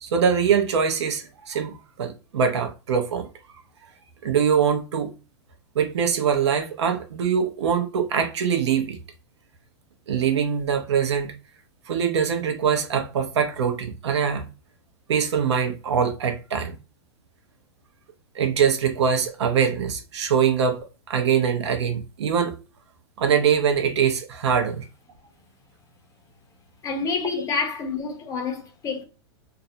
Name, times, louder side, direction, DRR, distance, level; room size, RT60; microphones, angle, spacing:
voice 1, 0.0-3.3 4.2-5.1 5.7-9.0 10.1-11.3 11.9-14.5 15.1-16.8 18.3-22.5 23.2-24.8, right 7 dB, 75° right, 0.6 m, -23 dB
voice 2, 26.8-29.0, left 4 dB, 25° left, 0.5 m, -28 dB
2.4 x 2.1 x 2.6 m
hypercardioid pair, 130°, 15 cm